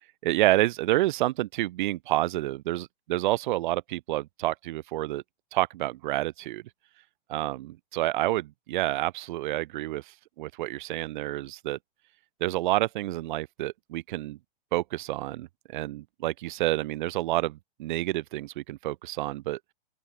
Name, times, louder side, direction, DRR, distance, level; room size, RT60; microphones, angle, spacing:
voice 1, 0.2-5.2 5.5-6.6 7.3-11.8 12.4-14.4 14.7-19.7, right 16 dB, 50° right, 0.9 m, -29 dB
open air
hypercardioid pair, 145°, 31 cm